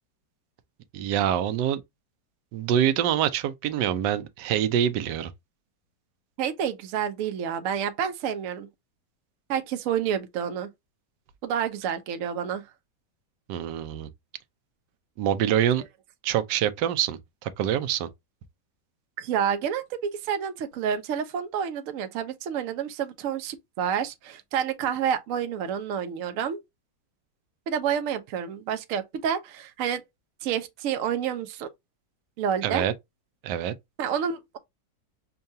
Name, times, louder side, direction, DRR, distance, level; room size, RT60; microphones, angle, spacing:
voice 1, 0.9-1.8 2.5-5.3 13.5-14.1 15.2-15.8 16.2-18.1 32.6-32.9 33.4-33.7, right 10 dB, 80° right, 1.2 m, -25 dB
voice 2, 6.4-8.7 9.5-10.7 11.4-12.7 19.2-26.6 27.7-30.0 30.4-31.7 32.4-32.9 34.0-34.6, right 8 dB, 65° right, 0.9 m, -29 dB
5.5 x 2.3 x 2.6 m
omnidirectional pair, 1.9 m